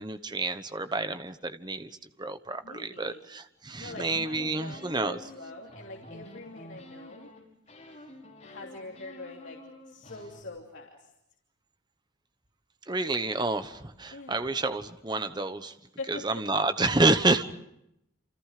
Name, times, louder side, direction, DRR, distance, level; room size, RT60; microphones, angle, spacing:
voice 1, 0.0-1.9 2.2-5.2 12.9-15.7 16.1-17.4, right 2 dB, 20° right, 10 dB, 1.1 m, -29 dB
voice 2, 2.6-3.2 3.8-7.3 8.4-11.1 14.1-14.6 16.0-16.4, left 2 dB, 70° left, -1 dB, 3.0 m, -44 dB
sound 1, 3.8-7.4 7.7-10.4, left 1 dB, 35° left, 5.8 m, -48 dB
28.5 x 28.0 x 5.0 m, 0.80 s
head